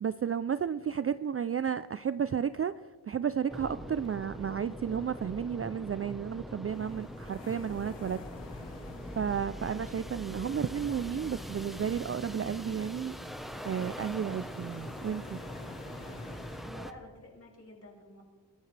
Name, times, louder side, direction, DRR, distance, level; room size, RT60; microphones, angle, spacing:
voice 1, 0.0-8.2 8.6-8.8 9.1-13.2 13.6-15.4, right 8 dB, 35° right, 0.4 m, -32 dB
sound 1, 3.5-16.9, equal, ahead, 1.0 m, -42 dB
sound 2, 6.7-16.6, left 5 dB, 80° left, 1.4 m, -52 dB
voice 2, 16.2-18.2, left 1 dB, 35° left, 5.9 m, -51 dB
27.0 x 14.5 x 3.3 m
wide cardioid pair, 90°, 42 cm